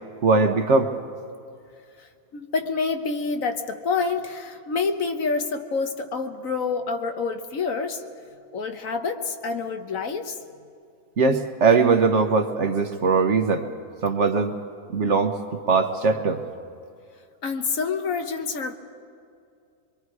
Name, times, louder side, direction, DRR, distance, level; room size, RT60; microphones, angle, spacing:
voice 1, 0.2-0.9 11.2-13.7 14.0-14.5 14.9-15.4 15.7-16.4, right 4 dB, 55° right, 6 dB, 1.3 m, -20 dB
voice 2, 2.0-8.0 8.5-10.4 17.4-18.7, left 4 dB, 60° left, 6 dB, 1.5 m, -27 dB
24.5 x 22.5 x 4.8 m, 2.4 s
omnidirectional pair, 1.6 m